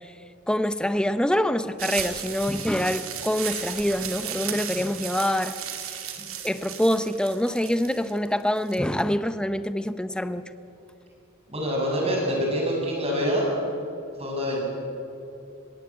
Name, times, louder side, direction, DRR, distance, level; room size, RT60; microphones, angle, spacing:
voice 1, 0.5-5.6 6.4-10.4, left 1 dB, 5° left, 12 dB, 0.6 m, -25 dB
sound 1, 1.8-8.8, right 9 dB, 75° right, 2.4 m, -35 dB
voice 2, 11.5-13.5 14.2-14.6, equal, 30° right, -2 dB, 6.8 m, -25 dB
21.5 x 17.0 x 8.6 m, 2.8 s
head